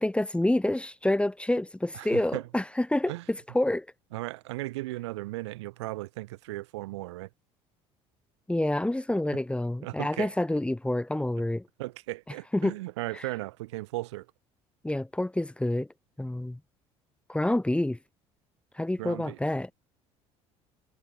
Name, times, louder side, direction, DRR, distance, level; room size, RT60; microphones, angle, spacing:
voice 1, 0.0-3.9 8.5-11.6 12.5-12.7 13.1-13.2 14.8-15.9 16.2-16.6 17.3-18.0 18.8-19.7, left 1 dB, 10° left, 1.9 m, -28 dB
voice 2, 1.9-2.4 3.1-3.2 4.1-7.3 9.8-10.3 11.8-14.3 19.0-19.4, right 19 dB, 90° right, 6.6 m, -36 dB
supercardioid pair, 75°, 14 cm